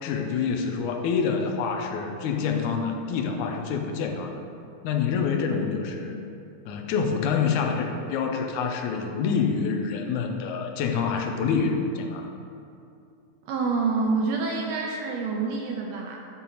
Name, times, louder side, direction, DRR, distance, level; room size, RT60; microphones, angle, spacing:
voice 1, 0.0-4.4 4.8-6.2 6.7-12.3, left 5 dB, 80° left, 4 dB, 2.1 m, -27 dB
voice 2, 13.4-16.3, right 4 dB, 80° right, 1 dB, 1.6 m, -27 dB
10.0 x 4.2 x 4.0 m, 2.6 s
omnidirectional pair, 3.4 m